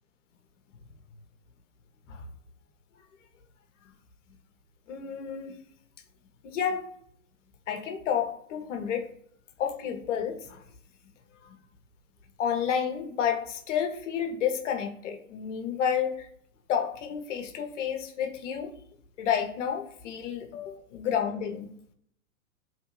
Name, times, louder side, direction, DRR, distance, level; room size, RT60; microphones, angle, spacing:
voice 1, 4.9-5.6 6.4-6.9 7.7-9.1 9.6-10.6 11.4-11.6 12.4-16.3 16.7-18.7 19.2-21.7, left 8 dB, 60° left, 5 dB, 0.8 m, -30 dB
2.9 x 2.6 x 3.0 m, 0.65 s
hypercardioid pair, 110°, 41 cm